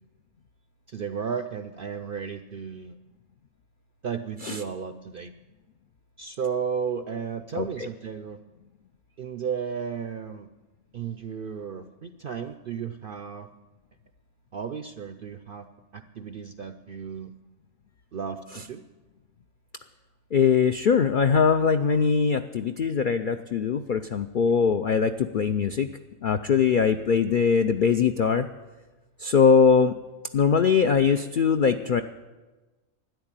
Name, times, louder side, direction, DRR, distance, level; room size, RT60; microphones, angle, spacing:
voice 1, 0.9-2.9 4.0-5.3 6.2-8.4 9.2-10.5 10.9-13.5 14.5-15.7 15.9-17.3 18.1-18.8, right 6 dB, 65° right, 10 dB, 0.5 m, -34 dB
voice 2, 20.3-25.9 26.2-28.5 29.2-29.9 30.3-32.0, left 6 dB, 70° left, 8 dB, 0.4 m, -21 dB
12.5 x 10.5 x 8.9 m, 1.2 s
omnidirectional pair, 1.5 m